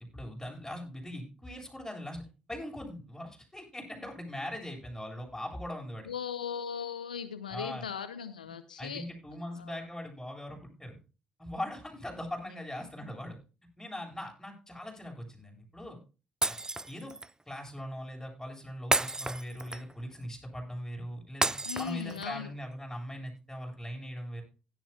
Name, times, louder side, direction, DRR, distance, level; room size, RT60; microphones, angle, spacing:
voice 1, 0.1-2.2 2.5-6.1 7.5-7.9 8.8-10.9 11.4-13.4 13.8-16.0 16.5-16.6 16.9-17.1 17.5-21.5 21.8-24.4, left 1 dB, 10° left, 1 dB, 7.8 m, -40 dB
voice 2, 6.1-9.0 9.5-9.9 21.6-22.5, left 7 dB, 90° left, 13 dB, 0.5 m, -38 dB
Shatter, 16.4-17.3 18.9-20.0 21.4-22.4, right 2 dB, 15° right, 0.5 m, -31 dB
16.5 x 12.0 x 2.3 m, 0.32 s
figure-of-eight pair, 45°, 4 cm